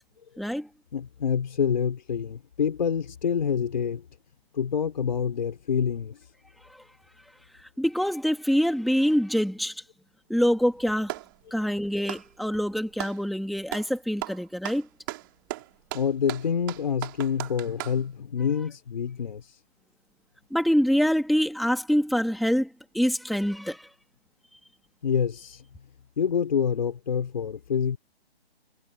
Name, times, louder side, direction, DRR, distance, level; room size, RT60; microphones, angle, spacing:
voice 1, 0.4-0.7 7.8-9.7 10.3-11.1 11.5-14.9 20.5-22.7 22.9-23.9, equal, ahead, 2.2 m, -25 dB
voice 2, 0.9-4.0 4.5-6.2 15.9-19.4 25.0-25.6 26.2-28.0, left 7 dB, 40° left, 4.3 m, -27 dB
Clapping, 10.4-11.4 12.0-13.2 13.7-13.9 14.2-18.0, right 20 dB, 20° right, 3.9 m, -37 dB
hypercardioid pair, 165°, 33 cm